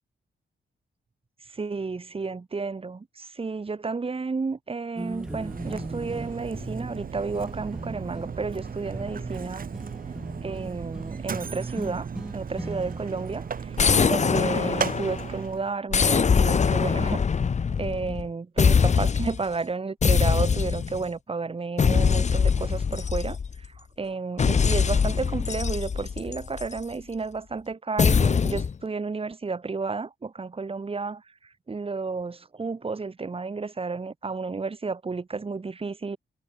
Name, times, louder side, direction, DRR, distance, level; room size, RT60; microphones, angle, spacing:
voice 1, 1.5-9.7 10.4-17.2 17.8-31.2 31.7-36.2, right 4 dB, 30° right, 4.7 m, -32 dB
sound 1, 4.9-15.5, equal, 5° right, 2.1 m, -40 dB
Mechanisms, 5.0-15.7, right 6 dB, 45° right, 2.9 m, -36 dB
sound 2, 13.8-15.4 15.9-18.3 18.6-19.4 20.0-21.0 21.8-23.7 24.4-26.8 28.0-28.7, left 6 dB, 35° left, 1.1 m, -23 dB
wide cardioid pair, 140°, 20 cm